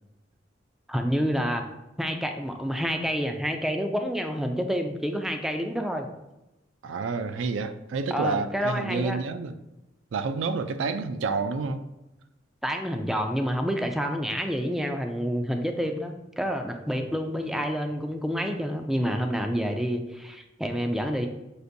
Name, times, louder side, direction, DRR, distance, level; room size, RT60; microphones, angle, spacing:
voice 1, 0.9-1.6 2.0-6.1 8.1-9.2 12.6-21.3, equal, ahead, 4 dB, 0.3 m, -28 dB
voice 2, 6.8-9.6 10.1-11.8, right 4 dB, 85° right, 10 dB, 0.4 m, -29 dB
6.5 x 2.6 x 2.6 m, 0.99 s
head